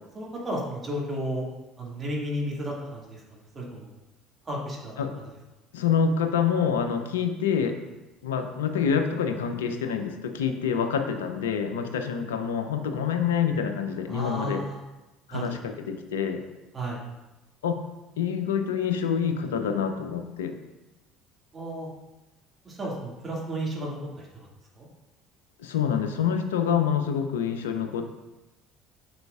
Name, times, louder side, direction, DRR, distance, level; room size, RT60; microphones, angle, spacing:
voice 1, 0.2-1.4 1.8-3.2 3.5-3.9 4.5-5.0 14.1-14.8 15.3-15.6 16.7-17.0 21.5-21.9 22.6-24.5 24.8-24.9, equal, 25° right, -4 dB, 2.0 m, -33 dB
voice 2, 5.7-7.8 8.2-14.6 15.3-16.4 17.6-17.8 18.2-20.5 25.6-28.0, left 7 dB, 75° left, 7 dB, 0.5 m, -26 dB
7.7 x 5.6 x 2.4 m, 1.0 s
figure-of-eight pair, 60°, 0 cm